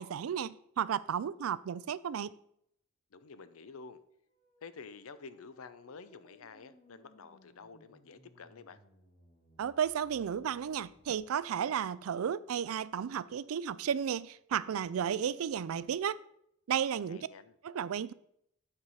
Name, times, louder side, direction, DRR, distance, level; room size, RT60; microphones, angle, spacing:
voice 1, 0.0-2.3 9.6-16.2 16.7-17.3 17.6-18.1, right 8 dB, 80° right, 0.4 m, -33 dB
voice 2, 3.1-4.0 4.6-8.8 17.1-17.6, left 4 dB, 80° left, 0.6 m, -50 dB
sound 1, 4.3-11.4, equal, 45° left, 2.4 m, -64 dB
8.8 x 4.6 x 5.6 m
head